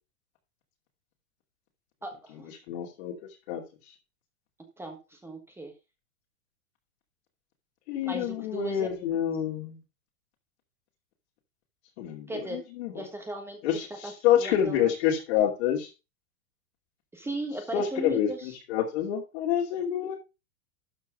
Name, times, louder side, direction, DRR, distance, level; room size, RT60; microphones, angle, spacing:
voice 1, 2.0-2.5 4.8-5.7 8.0-8.9 12.3-12.6 12.9-13.6 14.0-14.1 14.4-14.9 17.1-18.5, right 1 dB, 5° right, 4 dB, 1.3 m, -37 dB
voice 2, 2.7-3.1 3.5-3.6 7.9-9.8 12.0-13.0 13.6-15.9 17.7-20.2, left 9 dB, 55° left, -2 dB, 2.7 m, -27 dB
12.5 x 4.6 x 5.1 m, 0.29 s
supercardioid pair, 145°, 39 cm